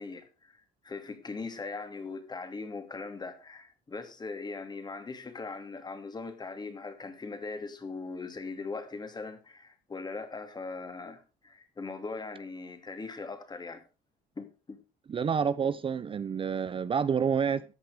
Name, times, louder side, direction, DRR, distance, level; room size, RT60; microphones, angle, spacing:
voice 1, 0.0-13.8 14.4-14.8, left 4 dB, 25° left, 2.8 m, -40 dB
voice 2, 15.1-17.6, right 7 dB, 30° right, 0.6 m, -28 dB
14.0 x 8.3 x 4.9 m
cardioid pair, 110°, 17 cm